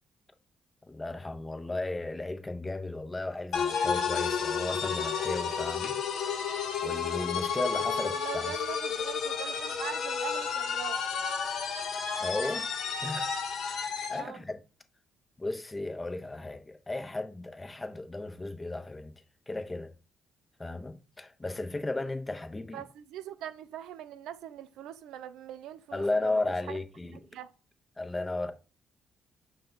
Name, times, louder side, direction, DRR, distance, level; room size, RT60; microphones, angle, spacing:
voice 1, 0.8-5.9 6.8-8.5 12.2-12.7 13.0-13.3 13.7-14.6 15.4-19.1 19.5-19.9 20.6-22.8 25.9-27.2 28.0-28.5, left 2 dB, 20° left, 0.6 m, -35 dB
sound 1, 3.5-14.3, left 6 dB, 75° left, 0.7 m, -31 dB
voice 2, 8.2-11.0 14.1-14.4 22.7-26.4 26.7-26.8 27.1-27.5, right 11 dB, 90° right, 0.3 m, -42 dB
5.6 x 2.2 x 3.9 m
cardioid pair, 90°, 0 cm